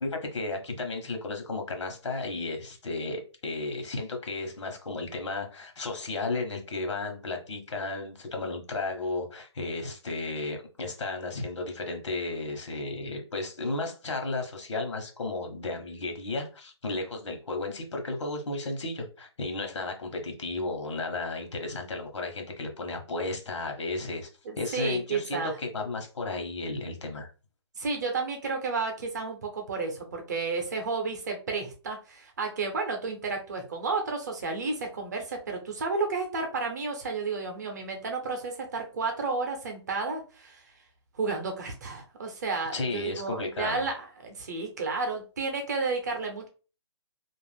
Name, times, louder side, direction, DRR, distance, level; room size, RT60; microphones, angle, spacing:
voice 1, 0.0-24.3 24.6-27.3 42.7-43.8, left 3 dB, 85° left, 4 dB, 1.0 m, -33 dB
voice 2, 24.4-25.5 27.8-40.6 41.2-46.5, right 4 dB, 40° right, 3 dB, 0.7 m, -32 dB
2.5 x 2.1 x 3.3 m, 0.34 s
hypercardioid pair, 170°, 15 cm